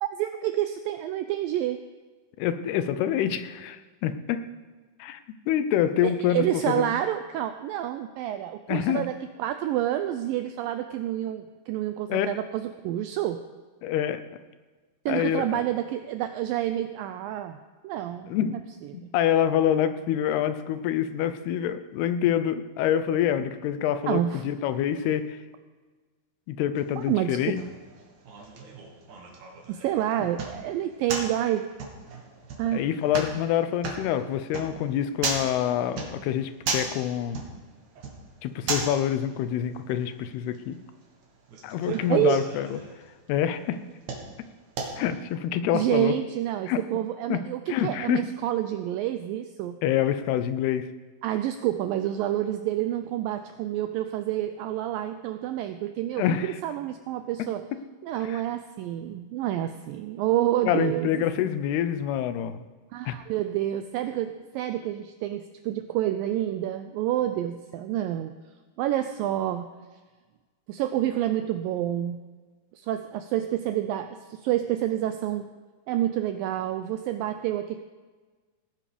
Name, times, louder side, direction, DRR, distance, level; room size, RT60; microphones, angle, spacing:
voice 1, 0.0-1.8 6.0-9.1 9.4-13.4 15.1-17.6 17.8-18.6 18.9-19.1 24.1-24.4 27.0-27.6 29.7-31.6 32.6-32.9 41.9-42.4 45.7-49.8 51.2-57.6 58.0-61.2 62.9-68.3 68.8-69.7 70.7-72.2 72.8-75.4 75.9-77.8, right 12 dB, 85° right, 9 dB, 2.0 m, -28 dB
voice 2, 2.4-4.4 5.0-5.2 5.5-7.0 8.7-9.1 12.1-12.3 13.8-14.2 15.1-15.6 18.3-18.6 18.9-25.4 26.5-27.6 30.2-30.3 32.7-37.4 38.4-40.8 41.6-42.8 43.3-43.8 45.0-46.1 46.7-46.8 47.3-47.4 47.7-48.2 49.8-50.9 56.2-56.6 58.2-58.4 60.7-62.6 63.1-63.2, left 10 dB, 85° left, 11 dB, 2.7 m, -26 dB
sound 1, 26.8-45.3, right 4 dB, 55° right, 2.7 m, -37 dB
18.0 x 9.3 x 5.1 m, 1.4 s
omnidirectional pair, 4.6 m